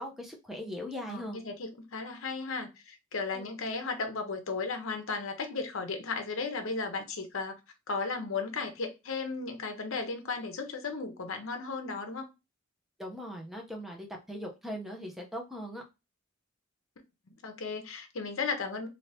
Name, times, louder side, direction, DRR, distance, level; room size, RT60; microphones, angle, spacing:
voice 1, 0.0-1.4 3.3-3.5 13.0-15.8, equal, ahead, 0.7 m, -40 dB
voice 2, 1.1-7.6 7.9-12.3 17.3-18.9, left 4 dB, 65° left, 0.7 m, -35 dB
2.8 x 2.7 x 3.3 m
head